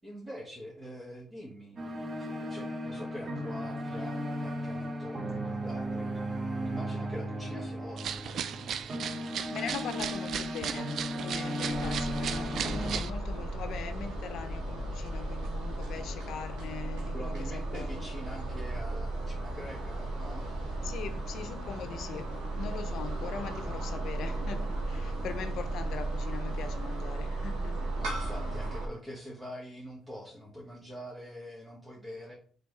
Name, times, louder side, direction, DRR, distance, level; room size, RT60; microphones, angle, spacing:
voice 1, 0.0-1.9 2.2-6.1 6.6-8.5 17.1-20.5 28.0-32.3, equal, 20° right, 1.3 m, -44 dB
sound 1, 1.8-13.0, equal, 45° right, 0.9 m, -35 dB
sound 2, 8.0-13.1, right 8 dB, 70° right, 0.3 m, -36 dB
voice 2, 9.5-18.0 20.8-27.8, left 7 dB, 75° left, 0.5 m, -41 dB
sound 3, 11.7-28.9, right 2 dB, 85° right, 1.3 m, -35 dB
3.9 x 3.3 x 3.1 m
supercardioid pair, 65°, 0 cm